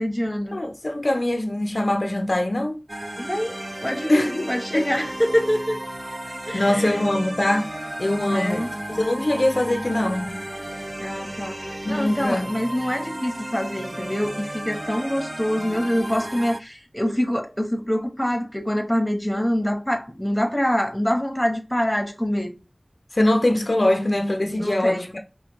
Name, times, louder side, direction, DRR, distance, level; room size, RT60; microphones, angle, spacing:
voice 1, 0.0-0.6 3.2-5.8 6.5-7.0 8.3-8.7 11.0-11.6 11.9-22.6 24.6-25.1, equal, 10° left, 1.1 m, -25 dB
voice 2, 0.5-2.8 4.1-4.5 4.7-4.9 6.5-7.7 8.0-10.4 12.0-12.5 23.1-25.2, left 1 dB, 60° left, 0.6 m, -22 dB
sound 1, 2.9-16.6, right 1 dB, 30° right, 0.3 m, -34 dB
5.7 x 2.3 x 3.0 m
wide cardioid pair, 45°, 0 cm